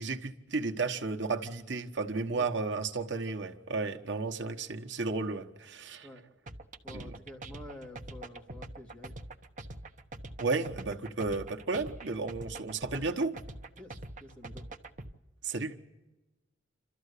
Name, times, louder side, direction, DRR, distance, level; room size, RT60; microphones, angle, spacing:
voice 1, 0.0-6.1 6.9-7.1 10.4-13.3 15.4-15.7, right 3 dB, 75° right, 5 dB, 1.3 m, -33 dB
sound 1, 6.5-15.1, right 2 dB, 40° right, 1.1 m, -44 dB
voice 2, 6.8-9.1 13.8-13.9 14.2-14.6, left 1 dB, 5° left, 1 dB, 2.3 m, -48 dB
28.5 x 13.5 x 8.3 m, 1.1 s
head